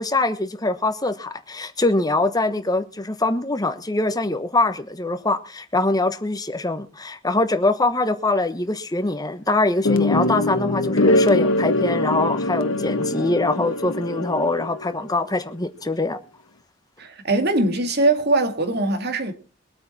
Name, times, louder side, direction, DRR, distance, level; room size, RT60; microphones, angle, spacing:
voice 1, 0.0-16.2, left 2 dB, 20° left, 1.2 m, -23 dB
sound 1, 9.8-15.0, left 2 dB, 80° left, 1.2 m, -22 dB
voice 2, 17.0-19.3, right 2 dB, 55° right, 2.3 m, -21 dB
22.5 x 8.6 x 4.3 m
head